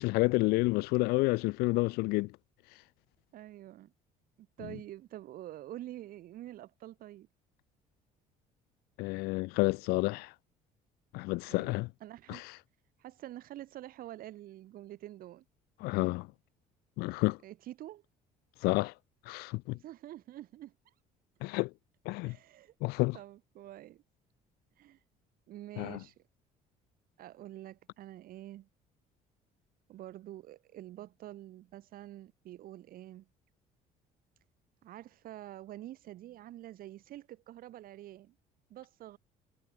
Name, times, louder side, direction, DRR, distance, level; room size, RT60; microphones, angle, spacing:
voice 1, 0.0-2.3 9.0-10.3 11.1-11.9 12.3-12.4 15.8-16.3 17.0-17.4 18.6-18.9 19.3-19.8 21.4-21.7 22.1-22.4 22.8-23.2 25.8-26.0, left 23 dB, 80° left, 0.4 m, -29 dB
voice 2, 3.3-3.9 4.6-7.3 11.5-12.4 13.0-15.4 17.4-18.0 19.7-20.9 22.2-22.7 23.1-24.0 24.8-25.0 25.5-26.2 27.2-28.7 29.9-33.3 34.8-38.3 38.7-39.2, right 14 dB, 65° right, 2.2 m, -47 dB
cardioid pair, 95°, 16 cm